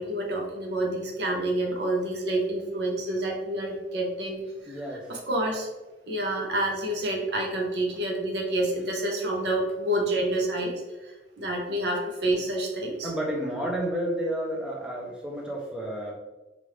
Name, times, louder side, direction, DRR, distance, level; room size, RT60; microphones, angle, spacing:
voice 1, 0.0-4.8 5.1-5.7 6.1-10.7 11.0-13.1, right 1 dB, 65° right, 1 dB, 0.8 m, -28 dB
voice 2, 4.7-5.1 13.0-16.1, right 1 dB, 5° right, -2 dB, 0.7 m, -31 dB
3.3 x 2.5 x 3.1 m, 1.1 s
head